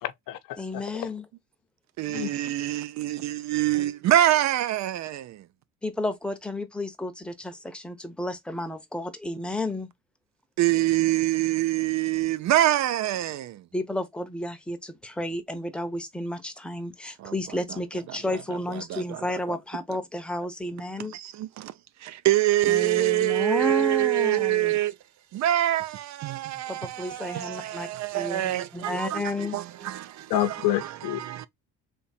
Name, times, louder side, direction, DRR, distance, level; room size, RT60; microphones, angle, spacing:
voice 1, 0.0-0.8 2.1-2.3 30.3-31.2, left 13 dB, 70° left, 0.8 m, -28 dB
voice 2, 0.6-1.3 5.8-9.9 13.7-21.1 22.7-24.7 26.5-27.9 28.1-29.6, left 1 dB, 5° left, 0.8 m, -32 dB
voice 3, 2.0-5.4 10.6-13.6 17.2-17.3 18.1-18.4 18.9-19.2 19.5-19.6 21.1-21.7 22.0-24.9 25.3-29.2 29.5-31.5, right 14 dB, 55° right, 0.5 m, -25 dB
3.6 x 2.7 x 4.2 m
cardioid pair, 110°, 35 cm